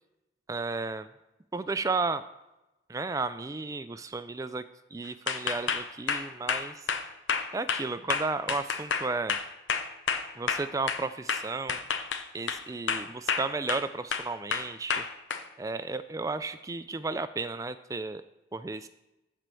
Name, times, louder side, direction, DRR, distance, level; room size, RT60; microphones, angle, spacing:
voice 1, 0.5-1.1 1.5-2.2 2.9-4.6 4.9-6.9 7.5-9.4 10.4-11.8 12.3-15.0 15.6-18.2 18.5-18.9, right 3 dB, 15° right, 12 dB, 0.3 m, -33 dB
sound 1, 5.3-11.0 11.3-12.6 12.9-13.8 14.1-15.4, left 6 dB, 80° left, 0.8 m, -30 dB
13.5 x 4.5 x 7.6 m, 0.98 s
head